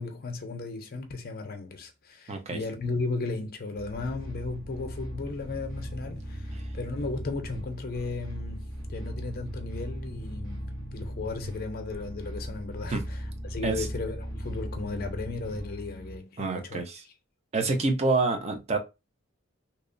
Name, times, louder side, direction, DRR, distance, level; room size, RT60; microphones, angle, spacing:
voice 1, 0.0-16.8, left 3 dB, 45° left, 0.6 m, -35 dB
voice 2, 2.3-2.6 12.9-13.1 13.6-13.9 16.4-16.9 17.5-18.8, right 3 dB, 30° right, 0.5 m, -27 dB
sound 1, 3.7-16.2, equal, 60° right, 0.9 m, -38 dB
2.8 x 2.0 x 2.4 m
head